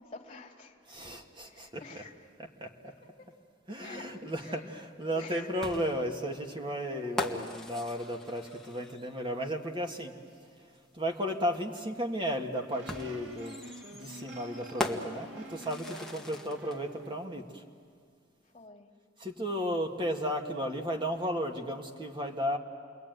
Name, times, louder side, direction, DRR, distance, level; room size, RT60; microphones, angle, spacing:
voice 1, 0.0-0.8 1.4-2.3 2.8-3.3 3.8-4.7 5.1-5.9 7.0-7.5 15.2-15.6 16.0-16.3 18.4-18.9, left 3 dB, 30° left, 0 dB, 2.5 m, -50 dB
voice 2, 0.9-1.8 2.6-2.7 3.7-10.1 11.0-13.6 13.9-17.4 19.2-22.6, equal, 25° right, 3 dB, 1.8 m, -34 dB
sound 1, 5.6-9.3 10.7-10.8 12.9-16.8, left 1 dB, ahead, 1.5 m, -39 dB
sound 2, 12.7-17.2, right 1 dB, 70° right, 2.1 m, -48 dB
29.5 x 22.0 x 9.3 m, 2.1 s
head